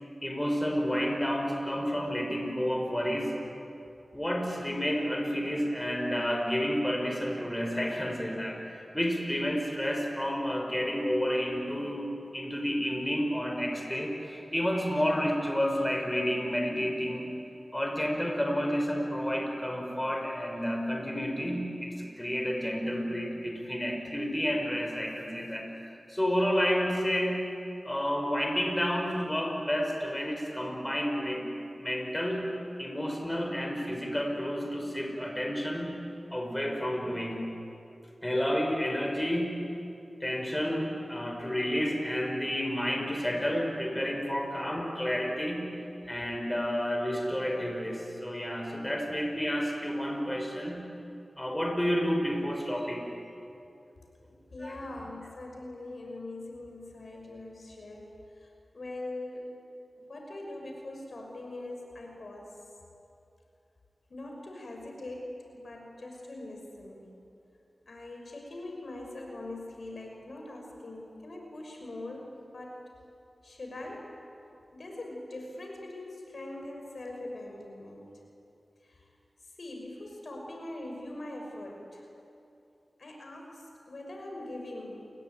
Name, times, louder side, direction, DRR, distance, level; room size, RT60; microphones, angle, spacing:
voice 1, 0.2-3.3 4.1-17.3 17.7-27.5 27.8-31.5 31.8-32.5 32.8-36.0 36.3-37.4 38.2-39.6 40.2-45.7 46.1-50.9 51.4-53.1 54.6-54.7, equal, 15° left, 2 dB, 5.8 m, -30 dB
voice 2, 54.3-59.5 60.0-62.5 64.1-67.1 67.9-72.8 73.4-74.1 74.7-78.1 78.8-79.1 79.6-82.1 83.0-85.0, left 2 dB, 70° left, 1 dB, 5.9 m, -42 dB
30.0 x 21.5 x 9.3 m, 2.8 s
wide cardioid pair, 50°, 0 cm